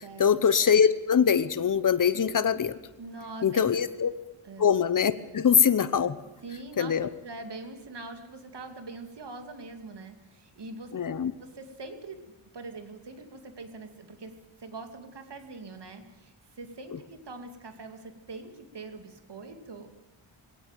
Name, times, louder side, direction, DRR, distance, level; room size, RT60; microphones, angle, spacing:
voice 1, 0.2-2.8 3.4-4.1 4.6-6.2 6.8-7.1 10.9-11.3, left 7 dB, 40° left, 13 dB, 1.0 m, -23 dB
voice 2, 3.0-3.8 4.4-4.7 6.4-6.9 7.2-10.9 11.4-12.3 12.5-19.9, right 3 dB, 55° right, 6 dB, 2.6 m, -43 dB
19.0 x 18.0 x 9.1 m, 1.0 s
wide cardioid pair, 175°, 50 cm